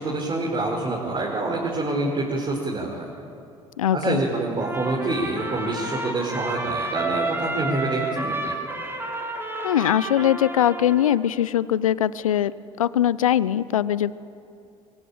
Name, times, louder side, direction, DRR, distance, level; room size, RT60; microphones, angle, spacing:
voice 1, 0.0-3.1 3.9-8.6, right 2 dB, 30° right, -3 dB, 5.4 m, -26 dB
voice 2, 3.8-4.2 9.6-12.5 12.8-14.2, left 11 dB, 80° left, 19 dB, 0.7 m, -21 dB
Trumpet, 4.6-11.2, right 2 dB, 15° right, 5.7 m, -30 dB
23.5 x 23.0 x 9.0 m, 2.5 s
figure-of-eight pair, 60°, 17 cm